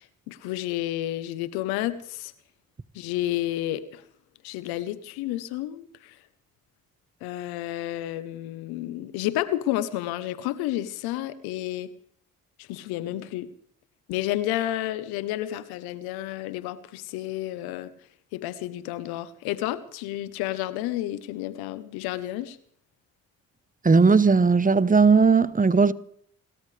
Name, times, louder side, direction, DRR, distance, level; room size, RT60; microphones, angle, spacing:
voice 1, 0.0-2.3 2.9-4.0 4.4-6.2 7.2-11.9 12.6-13.5 14.1-17.9 18.3-22.6, left 14 dB, 90° left, 1.0 m, -31 dB
voice 2, 23.8-25.9, right 4 dB, 20° right, 1.0 m, -17 dB
28.5 x 13.5 x 3.3 m
hypercardioid pair, 45°, 36 cm